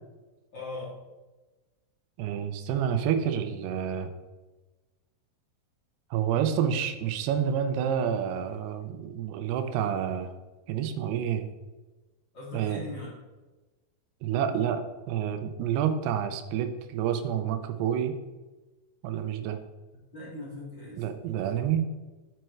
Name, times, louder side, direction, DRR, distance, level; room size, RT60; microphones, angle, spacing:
voice 1, 0.5-0.9 12.3-13.1 20.1-21.0, left 2 dB, 35° left, -7 dB, 2.3 m, -39 dB
voice 2, 2.2-4.1 6.1-10.3 10.7-11.4 12.5-12.8 14.2-14.8 15.1-18.2 19.0-19.6 21.0-21.9, right 9 dB, 85° right, 8 dB, 2.7 m, -28 dB
9.1 x 7.6 x 3.2 m, 1.2 s
omnidirectional pair, 4.6 m